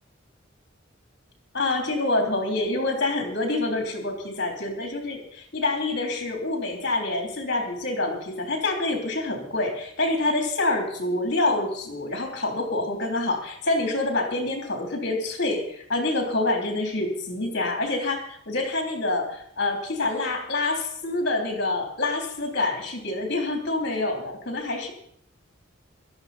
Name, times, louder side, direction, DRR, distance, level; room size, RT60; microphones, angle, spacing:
voice 1, 1.5-24.9, left 2 dB, 55° left, 2 dB, 3.4 m, -27 dB
16.5 x 12.5 x 4.3 m, 0.66 s
head